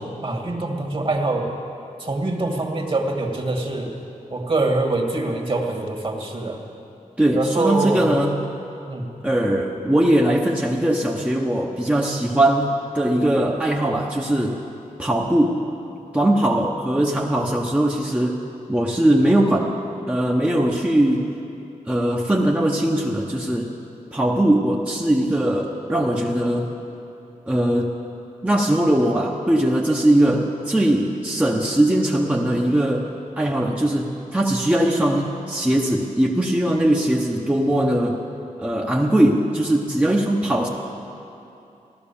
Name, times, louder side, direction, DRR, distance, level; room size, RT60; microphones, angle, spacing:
voice 1, 0.0-1.5 2.0-4.0 4.3-6.6 7.3-8.1 8.9-9.1, right 2 dB, 40° right, 2 dB, 2.1 m, -24 dB
voice 2, 7.2-8.5 9.2-14.6 15.0-15.6 16.1-18.4 18.7-19.7 20.1-21.3 21.9-23.7 24.1-26.7 27.5-27.9 28.4-33.1 33.3-38.2 38.6-40.7, right 1 dB, 10° right, -2 dB, 1.1 m, -20 dB
16.0 x 12.0 x 7.1 m, 2.8 s
wide cardioid pair, 90°, 13 cm